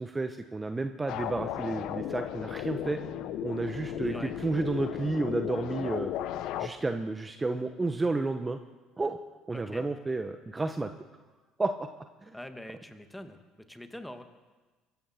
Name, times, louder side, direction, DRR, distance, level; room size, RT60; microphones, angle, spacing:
voice 1, 0.0-3.0 3.4-6.1 6.6-8.6 9.0-9.2 9.5-10.9 11.6-11.9 12.2-12.4, right 3 dB, 20° right, 8 dB, 1.0 m, -31 dB
sound 1, 1.1-6.7, left 11 dB, 65° left, 1.0 m, -35 dB
voice 2, 4.0-4.4 9.5-9.8 12.3-13.4 13.7-14.2, left 1 dB, 5° left, 7 dB, 1.7 m, -43 dB
23.5 x 13.0 x 4.4 m, 1.3 s
hypercardioid pair, 65°, 0 cm